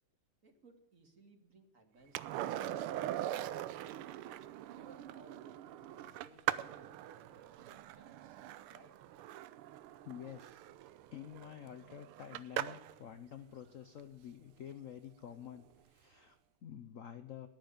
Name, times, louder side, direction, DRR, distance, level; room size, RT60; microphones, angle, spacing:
voice 1, 0.4-3.8 4.7-8.4 8.7-8.9, right 3 dB, 40° right, 5 dB, 2.1 m, -62 dB
Skateboard, 2.1-13.0 15.6-15.7, right 13 dB, 80° right, 1.6 m, -42 dB
voice 2, 10.0-10.7 11.1-17.5, left 9 dB, 75° left, 9 dB, 0.7 m, -49 dB
13.0 x 10.5 x 6.7 m, 0.88 s
omnidirectional pair, 2.4 m